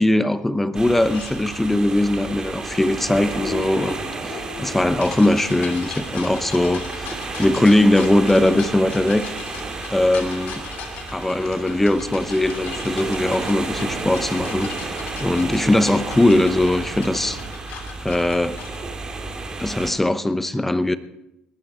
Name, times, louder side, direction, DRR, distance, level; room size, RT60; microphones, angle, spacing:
voice 1, 0.0-7.1 7.4-9.3 9.9-10.6 11.1-17.4 18.0-18.6 19.2-21.0, left 1 dB, 10° left, 0.9 m, -20 dB
sound 1, 0.7-19.9, right 3 dB, 25° right, 3.1 m, -32 dB
sound 2, 1.1-1.3 3.3-18.8, left 7 dB, 70° left, 2.9 m, -38 dB
sound 3, 12.4-17.5, right 7 dB, 75° right, 3.1 m, -42 dB
20.5 x 12.5 x 4.4 m
supercardioid pair, 95°, 3 cm